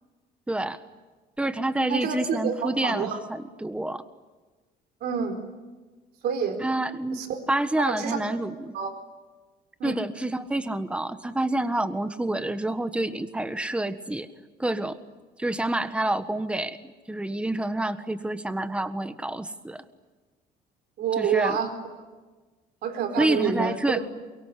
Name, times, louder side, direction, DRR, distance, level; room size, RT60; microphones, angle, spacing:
voice 1, 0.5-0.8 1.4-4.0 6.6-8.7 9.8-14.3 14.6-15.0 15.4-16.8 17.1-19.8 21.2-21.6 23.2-24.0, right 1 dB, 5° right, 10 dB, 1.4 m, -28 dB
voice 2, 1.9-3.2 5.0-5.4 6.2-6.6 7.1-7.4 7.8-8.2 8.7-8.9 9.8-10.0 21.0-21.7 22.8-24.0, right 7 dB, 70° right, 6 dB, 4.1 m, -28 dB
23.5 x 23.0 x 9.9 m, 1.3 s
cardioid pair, 110°, 17 cm